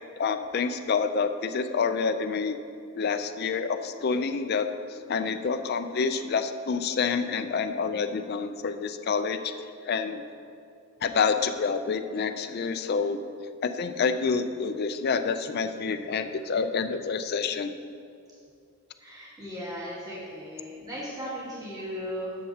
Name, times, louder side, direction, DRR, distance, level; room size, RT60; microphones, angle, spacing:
voice 1, 0.2-2.6 2.9-9.5 9.8-10.2 11.0-13.2 13.6-17.7, left 5 dB, 50° left, 9 dB, 0.4 m, -28 dB
voice 2, 19.0-22.4, equal, 20° right, -9 dB, 2.2 m, -37 dB
13.0 x 7.7 x 2.8 m, 2.4 s
head